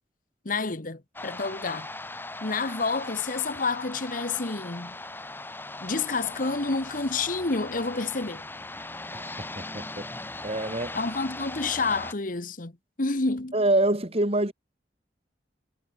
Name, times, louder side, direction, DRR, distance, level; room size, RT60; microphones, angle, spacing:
voice 1, 0.4-1.9 2.4-5.0 5.8-8.4 10.9-12.7 13.0-13.6, left 3 dB, 50° left, 1.4 m, -29 dB
sound 1, 1.1-12.1, left 2 dB, 10° left, 1.6 m, -39 dB
voice 2, 9.1-10.1 10.4-11.0 13.5-14.5, right 1 dB, 35° right, 3.1 m, -26 dB
head